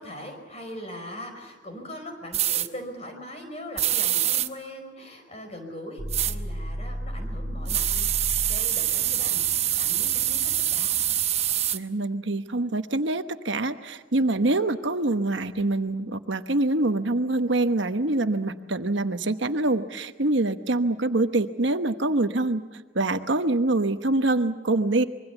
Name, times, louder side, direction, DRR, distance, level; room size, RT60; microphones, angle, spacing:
voice 1, 0.0-8.1 8.5-10.9, left 1 dB, 35° left, 5 dB, 4.9 m, -40 dB
sound 1, 2.3-2.7 3.8-4.5 6.1-6.3 7.7-11.8, right 11 dB, 35° right, 0.8 m, -25 dB
sound 2, 6.0-8.8, equal, 15° left, 4.7 m, -33 dB
voice 2, 11.7-25.0, right 2 dB, 70° right, 9 dB, 1.1 m, -25 dB
25.5 x 22.5 x 7.1 m, 1.2 s
head